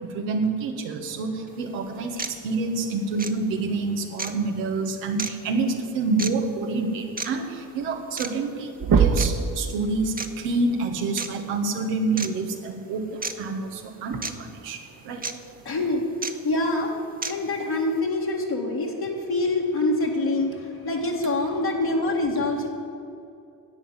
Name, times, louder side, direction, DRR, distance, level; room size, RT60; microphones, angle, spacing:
voice 1, 0.1-8.7 9.0-13.1 13.4-14.8 15.0-15.2, right 3 dB, 90° right, 2 dB, 1.4 m, -27 dB
sound 1, 1.5-1.6 2.2-2.4 3.2-3.3 4.2-4.3 5.2-5.3 6.2-6.3 7.2-7.3 8.2-8.3 9.2-9.3 10.2-10.3 11.2-11.3 12.2-12.3 13.2-13.3 14.2-14.3 15.2-15.3 16.2-16.3 17.2-17.3, right 4 dB, 20° right, 1.0 m, -30 dB
sound 2, 7.9-8.0 8.3-8.5 8.8-9.5 11.2-11.3 13.1-13.2 14.1-14.2, right 6 dB, 50° right, 1.3 m, -20 dB
voice 2, 15.7-16.0 16.4-16.9 17.2-22.7, left 2 dB, 55° left, -2 dB, 2.1 m, -25 dB
11.5 x 7.9 x 8.8 m, 2.6 s
supercardioid pair, 60°, 45 cm